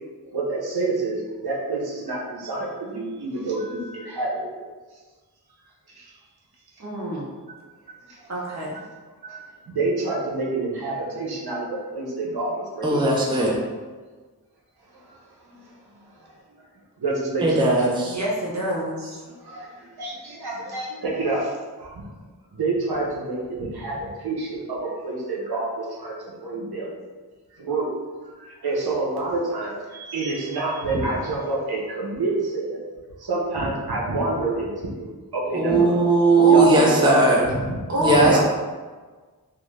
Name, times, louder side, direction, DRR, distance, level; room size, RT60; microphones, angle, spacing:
voice 1, 0.2-4.6 6.0-6.1 8.1-8.4 9.2-13.5 14.9-15.2 15.4-15.8 16.2-16.6 17.0-17.7 19.2-22.1 22.5-27.0 27.5-28.0 28.4-32.8 33.2-35.0 35.3-36.0 36.5-37.8 38.0-38.4, right 2 dB, 80° right, -5 dB, 0.7 m, -28 dB
voice 2, 6.8-7.3 8.3-8.8 18.0-19.2 36.3-37.2 37.9-38.4, equal, 45° right, -4 dB, 0.9 m, -26 dB
voice 3, 12.8-13.6 17.4-18.2 35.5-37.5 38.0-38.4, right 3 dB, 15° right, -2 dB, 0.5 m, -18 dB
2.6 x 2.4 x 3.2 m, 1.4 s
wide cardioid pair, 55°, 38 cm